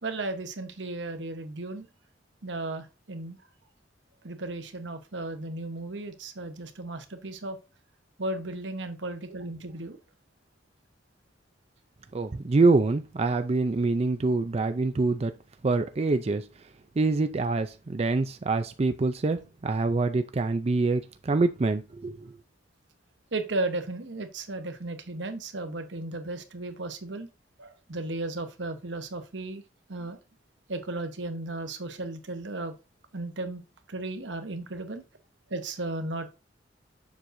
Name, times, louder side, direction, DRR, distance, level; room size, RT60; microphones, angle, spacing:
voice 1, 0.0-1.9 2.4-3.4 4.2-7.6 8.2-10.0 23.3-27.3 27.6-29.6 29.9-30.2 30.7-32.7 33.1-33.6 33.9-35.0 35.5-36.3, right 2 dB, 80° right, 1.1 m, -35 dB
voice 2, 12.1-15.3 15.6-16.5 17.0-22.3, right 3 dB, 35° right, 0.4 m, -25 dB
7.3 x 6.4 x 2.7 m
head